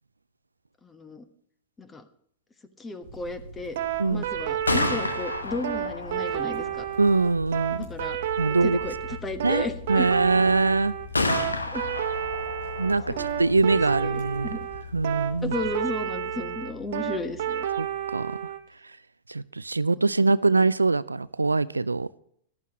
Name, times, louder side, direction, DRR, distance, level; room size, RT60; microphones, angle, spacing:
voice 1, 0.8-1.3 1.8-2.0 2.8-3.8 4.0-6.9 7.7-8.2 8.6-10.1 11.7-11.8 13.1-13.3 13.7-14.7 15.4-17.7, left 3 dB, 15° left, 1.3 m, -34 dB
sound 1, 3.0-15.7, right 1 dB, 70° left, 5.6 m, -46 dB
sound 2, 3.8-18.6, right 11 dB, 60° right, 1.0 m, -30 dB
Gunshot gunfire, 4.4-18.2, left 3 dB, 90° left, 1.1 m, -34 dB
voice 2, 7.0-7.9 8.4-8.8 9.4-10.9 12.8-14.5 14.9-15.5 17.8-17.9 18.1-18.3 19.3-22.1, right 3 dB, 90° right, 0.3 m, -23 dB
14.5 x 11.5 x 3.0 m
figure-of-eight pair, 100°, 0 cm